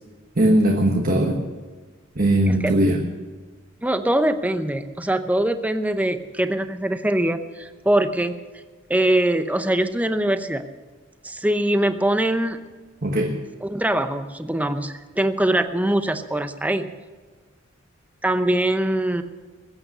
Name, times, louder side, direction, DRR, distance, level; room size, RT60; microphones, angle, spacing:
voice 1, 0.4-1.4 2.1-3.0 13.0-13.4, right 1 dB, 45° right, 2 dB, 1.3 m, -19 dB
voice 2, 3.8-8.4 8.9-10.6 11.2-12.6 13.6-16.9 18.2-19.2, right 1 dB, 10° right, 9 dB, 0.7 m, -22 dB
21.0 x 8.7 x 6.8 m, 1.4 s
head